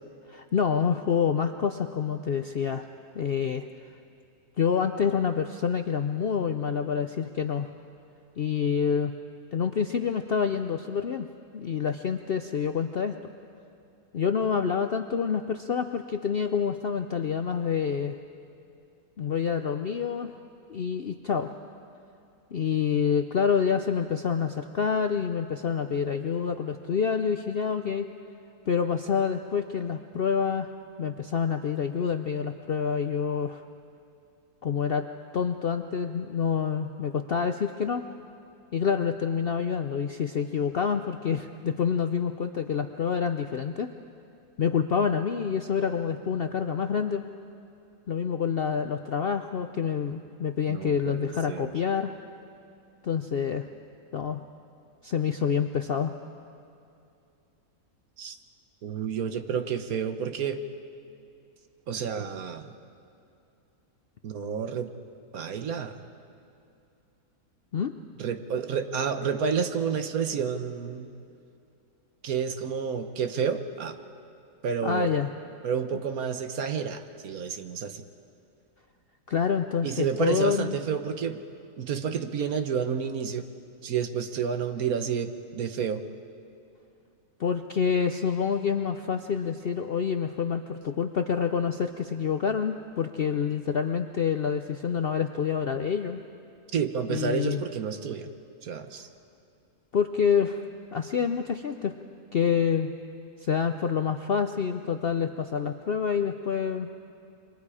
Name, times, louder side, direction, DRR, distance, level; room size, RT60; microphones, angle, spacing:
voice 1, 0.3-2.8 3.1-3.6 4.6-7.7 8.4-9.1 9.5-11.3 11.5-13.2 14.1-18.2 19.2-20.3 20.7-21.5 22.5-28.1 28.7-30.7 31.0-33.6 34.6-35.1 35.3-38.0 38.7-43.9 44.6-47.2 48.1-52.1 53.0-53.7 54.1-54.4 55.0-56.1 67.7-67.9 74.8-75.3 79.3-80.8 87.4-96.2 97.1-97.6 99.9-100.6 100.9-101.9 102.3-102.9 103.4-106.9, left 6 dB, 60° left, 7 dB, 0.6 m, -27 dB
voice 2, 50.7-51.7 58.2-58.4 58.8-60.6 61.9-62.7 64.2-64.9 65.3-66.0 68.2-71.1 72.2-74.0 74.6-75.1 75.6-78.0 79.8-81.4 81.8-83.5 83.8-86.0 96.7-98.3 98.6-99.1, right 7 dB, 65° right, 8 dB, 1.4 m, -30 dB
27.5 x 24.0 x 4.9 m, 2.6 s
omnidirectional pair, 1.7 m